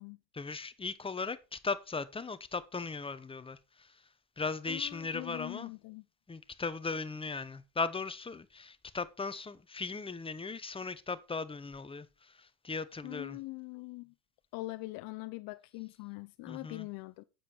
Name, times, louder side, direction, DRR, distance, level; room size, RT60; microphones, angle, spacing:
voice 1, 0.3-4.1 4.4-5.7 6.3-13.4 16.5-16.9, left 4 dB, 15° left, 0.8 m, -38 dB
voice 2, 4.7-6.0 13.0-14.1 14.5-17.2, left 22 dB, 65° left, 0.7 m, -42 dB
8.4 x 7.3 x 4.4 m
supercardioid pair, 105°, 40 cm